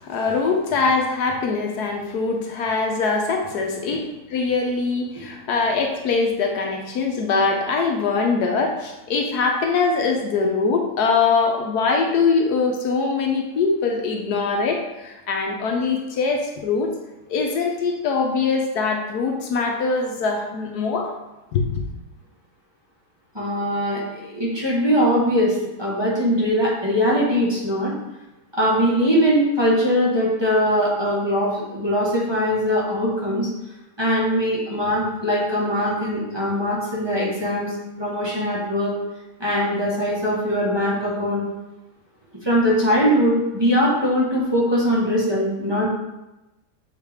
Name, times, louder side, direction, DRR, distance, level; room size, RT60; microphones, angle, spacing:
voice 1, 0.0-16.9 17.3-21.1 21.5-21.9, left 4 dB, 75° left, 2 dB, 1.3 m, -22 dB
voice 2, 23.3-27.9 28.5-33.5 34.0-37.7 38.0-38.9 39.4-41.4 42.4-45.9, equal, 15° right, -7 dB, 1.5 m, -21 dB
6.6 x 4.5 x 3.6 m, 0.99 s
omnidirectional pair, 1.7 m